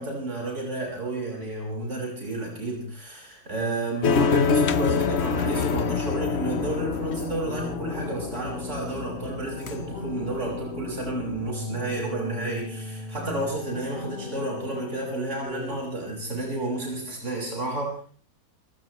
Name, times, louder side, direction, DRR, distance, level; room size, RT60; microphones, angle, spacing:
voice 1, 0.0-18.0, right 2 dB, 50° right, -2 dB, 6.1 m, -31 dB
sound 1, 4.0-11.5, left 5 dB, 50° left, 1.1 m, -27 dB
sound 2, 6.4-15.8, left 1 dB, 35° left, 3.3 m, -38 dB
28.0 x 16.0 x 3.1 m, 0.43 s
omnidirectional pair, 1.6 m